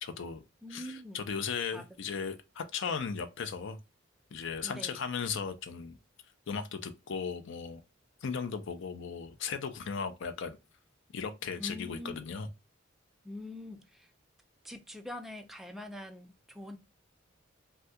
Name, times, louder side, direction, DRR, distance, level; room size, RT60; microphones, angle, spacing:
voice 1, 0.0-0.4 0.7-3.8 4.3-6.0 6.5-7.8 8.2-10.6 11.1-12.5, left 6 dB, 65° left, 0.5 m, -36 dB
voice 2, 0.6-1.2 1.7-1.8 4.6-5.0 11.6-12.3 13.2-14.1 14.6-16.8, left 1 dB, ahead, 0.3 m, -44 dB
2.7 x 2.2 x 3.3 m
head